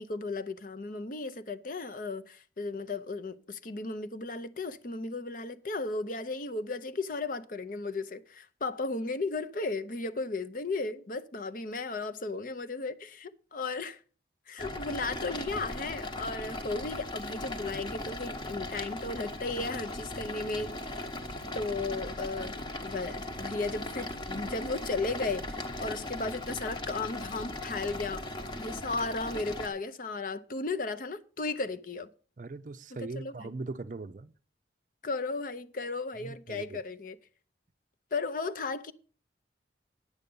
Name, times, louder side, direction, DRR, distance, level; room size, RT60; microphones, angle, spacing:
voice 1, 0.0-14.0 14.5-21.1 21.5-32.1 33.0-33.6 35.0-37.2 38.1-38.9, left 3 dB, 45° left, 0.7 m, -35 dB
sound 1, 14.6-29.7, left 1 dB, 25° left, 1.0 m, -38 dB
voice 2, 32.4-34.3 36.2-36.8, right 3 dB, 45° right, 0.5 m, -40 dB
9.7 x 8.1 x 5.4 m
head